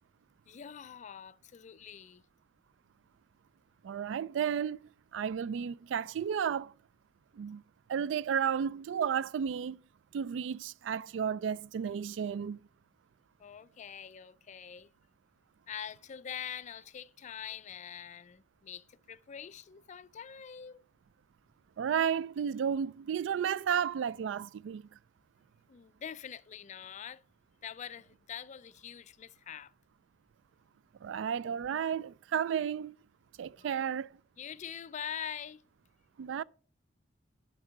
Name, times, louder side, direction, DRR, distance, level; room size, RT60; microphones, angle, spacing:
voice 1, 0.5-2.2 13.4-14.9 15.7-20.9 25.7-27.2 27.6-29.7 33.6-33.9 34.4-35.6, left 8 dB, 40° left, 0.4 m, -44 dB
voice 2, 3.8-4.8 5.1-6.7 7.4-7.6 7.9-9.8 10.1-12.6 21.8-24.9 31.0-32.9 33.4-34.1 36.2-36.4, right 8 dB, 75° right, 0.3 m, -32 dB
11.0 x 4.7 x 4.8 m
head